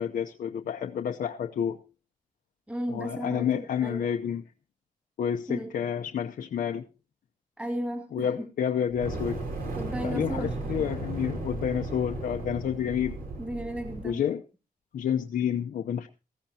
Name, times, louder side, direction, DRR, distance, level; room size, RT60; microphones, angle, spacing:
voice 1, 0.0-1.8 2.9-4.4 5.2-6.9 8.1-9.4 10.0-13.1 14.0-14.4 14.9-16.1, left 8 dB, 70° left, 0.8 m, -29 dB
voice 2, 2.7-4.0 5.5-5.7 7.6-8.3 9.7-10.6 13.4-14.2, equal, 10° right, 2.3 m, -34 dB
Fire, 8.9-14.2, right 2 dB, 75° right, 4.4 m, -35 dB
19.0 x 15.0 x 2.8 m
wide cardioid pair, 175°, 15 cm